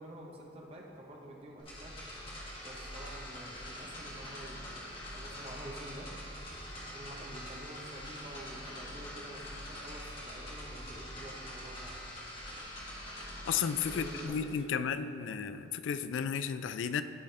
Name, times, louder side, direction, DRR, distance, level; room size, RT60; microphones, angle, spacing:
voice 1, 0.0-1.9 2.6-6.1 6.9-12.0 13.9-15.4, right 1 dB, 35° right, -1 dB, 0.9 m, -48 dB
sound 1, 1.6-14.3, equal, 30° left, 1.7 m, -44 dB
voice 2, 13.5-17.0, left 7 dB, 80° left, 12 dB, 0.3 m, -33 dB
12.0 x 4.9 x 3.3 m, 2.8 s
head